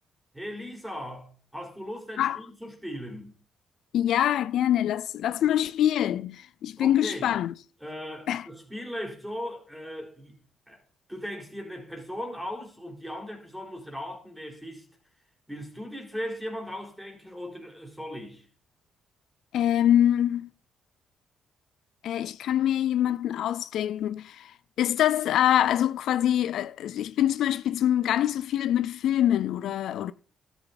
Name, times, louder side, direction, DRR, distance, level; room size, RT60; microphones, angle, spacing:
voice 1, 0.3-3.3 6.8-7.3 7.8-10.4 10.7-10.8 11.1-14.9 15.5-18.5, equal, 5° right, 3.9 m, -38 dB
voice 2, 3.9-7.5 8.3-8.4 19.5-20.5 22.0-24.5 24.8-30.1, left 11 dB, 75° left, 0.4 m, -24 dB
13.0 x 8.1 x 4.0 m
cardioid pair, 90°, 0 cm